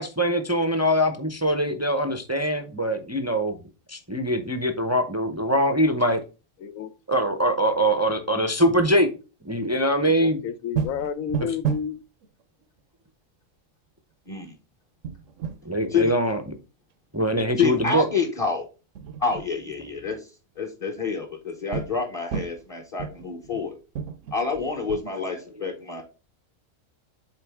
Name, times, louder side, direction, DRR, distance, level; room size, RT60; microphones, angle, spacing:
voice 1, 0.0-3.6 3.9-6.2 7.1-9.1 9.5-10.4 11.4-11.5 15.6-16.4 17.1-18.1, equal, 20° right, 0.4 m, -23 dB
voice 2, 6.6-6.9 10.0-12.0, left 7 dB, 85° left, 1.1 m, -31 dB
sound 1, 10.7-11.9 12.2-12.3 12.6-12.7 15.0-15.6 18.1-18.4 18.9-19.5 21.7-22.0 22.3-22.7 23.0-23.7 23.9-25.0, right 7 dB, 75° right, 0.9 m, -31 dB
voice 3, 17.6-18.6 19.2-20.3 20.6-23.7 24.3-26.0, left 5 dB, 30° left, 0.9 m, -27 dB
7.5 x 3.9 x 3.5 m
omnidirectional pair, 1.4 m